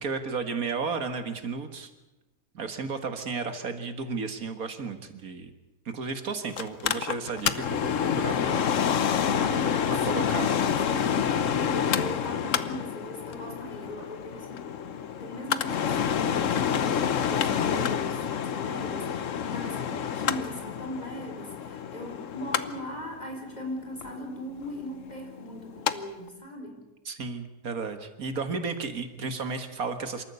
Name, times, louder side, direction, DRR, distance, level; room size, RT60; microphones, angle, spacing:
voice 1, 0.0-1.9 2.5-5.5 5.9-8.7 10.1-10.5 27.1-30.2, right 4 dB, 80° right, 9 dB, 2.2 m, -33 dB
Mechanical fan, 6.6-25.9 26.3-26.4, left 8 dB, 65° left, 1.3 m, -28 dB
voice 2, 9.2-10.5 10.8-26.8, equal, 30° left, 3 dB, 4.4 m, -39 dB
27.0 x 14.0 x 8.2 m, 1.0 s
omnidirectional pair, 1.5 m